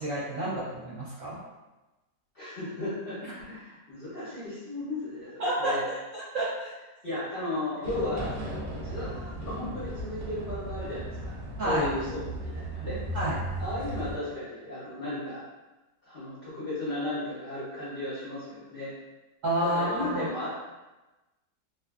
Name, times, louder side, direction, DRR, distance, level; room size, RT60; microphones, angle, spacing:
voice 1, 0.0-1.4 3.2-3.3 5.4-5.7 6.1-6.5 11.6-11.9 13.1-13.4 19.4-20.3, right 1 dB, 65° right, -9 dB, 0.9 m, -29 dB
voice 2, 2.3-5.8 7.0-8.3 8.7-13.0 13.6-15.4 16.0-18.9 19.6-20.7, left 2 dB, 50° left, -11 dB, 0.7 m, -35 dB
sound 1, 7.8-14.2, right 1 dB, 90° right, 0.6 m, -36 dB
2.5 x 2.4 x 2.3 m, 1.1 s
omnidirectional pair, 1.7 m